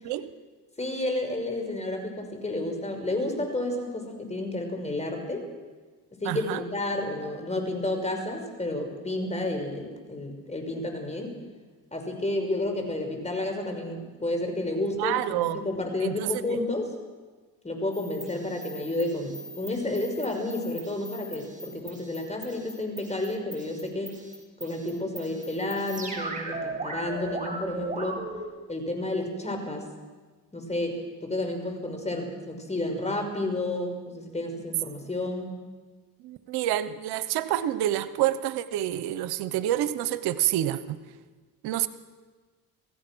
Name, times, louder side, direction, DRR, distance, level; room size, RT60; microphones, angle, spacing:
voice 1, 0.8-5.5 6.2-11.3 11.9-16.9 17.6-24.1 24.6-28.2 28.7-29.9 30.5-35.6, left 2 dB, 15° left, 4 dB, 5.7 m, -31 dB
voice 2, 6.2-6.6 15.0-15.6 16.0-16.6 36.2-41.0 41.6-41.9, right 13 dB, 80° right, 14 dB, 1.0 m, -28 dB
sound 1, 17.9-28.4, right 2 dB, 20° right, 6.6 m, -39 dB
27.0 x 16.0 x 6.3 m, 1.4 s
supercardioid pair, 75°, 38 cm